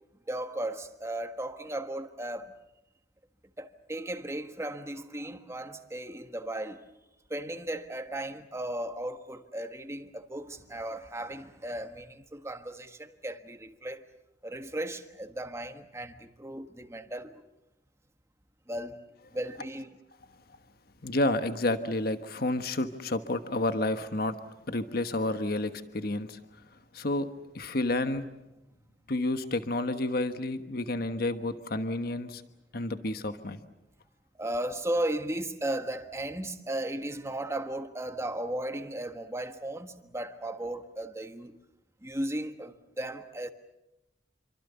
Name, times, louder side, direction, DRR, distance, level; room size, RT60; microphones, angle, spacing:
voice 1, 0.3-2.6 3.6-6.8 7.3-14.0 14.4-17.4 18.7-19.0 19.3-19.9 34.4-41.6 42.0-43.5, right 1 dB, 15° right, 1.5 m, -36 dB
voice 2, 21.0-24.4 24.7-26.4 26.9-27.3 27.5-28.3 29.1-32.4 32.7-33.6, left 2 dB, 55° left, 1.3 m, -30 dB
27.5 x 25.0 x 7.0 m
head